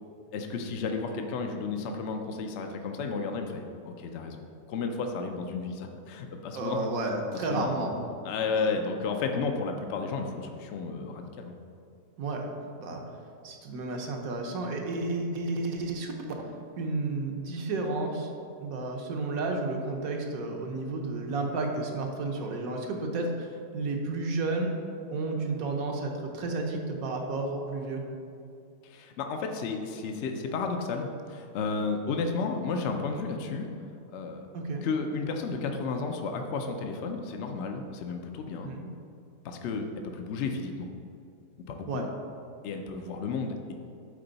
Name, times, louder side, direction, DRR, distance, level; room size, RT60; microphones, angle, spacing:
voice 1, 0.3-6.9 7.5-7.9 8.2-11.6 28.8-33.7 34.1-34.5 34.8-38.7 39.4-40.9 41.7-42.1 42.6-43.7, left 4 dB, 65° left, 4 dB, 0.7 m, -33 dB
voice 2, 6.5-8.1 8.5-8.7 12.2-13.0 13.4-16.1 16.8-18.3 18.6-24.7 25.1-28.0 34.5-34.9 38.6-38.8 41.9-42.0, right 2 dB, 70° right, 2 dB, 1.2 m, -32 dB
8.7 x 3.8 x 3.9 m, 2.5 s
omnidirectional pair, 1.6 m